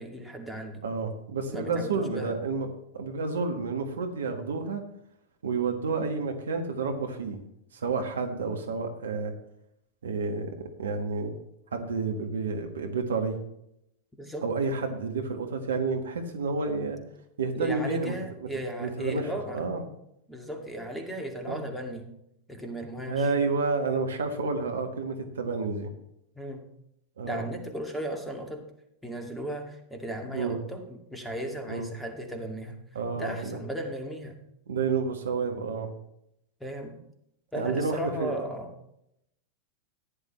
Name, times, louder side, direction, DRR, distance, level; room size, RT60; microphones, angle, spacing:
voice 1, 0.0-0.8 1.5-2.3 14.2-14.5 17.5-19.6 20.3-22.1 22.5-23.3 26.4-26.7 27.2-28.7 29.0-32.8 33.1-34.4 36.6-37.0 37.5-38.7, right 1 dB, 5° left, 3 dB, 2.2 m, -36 dB
voice 2, 0.8-2.7 2.9-4.8 5.4-7.4 7.7-9.3 10.0-10.5 10.8-11.3 11.7-13.4 14.4-17.0 17.4-18.1 18.8-19.9 21.5-21.7 23.1-25.9 27.2-27.4 30.3-30.6 31.7-31.9 32.9-33.6 34.7-35.9 37.5-38.3, right 4 dB, 65° right, 5 dB, 1.5 m, -30 dB
15.0 x 10.5 x 3.2 m, 0.78 s
figure-of-eight pair, 90°, 0 cm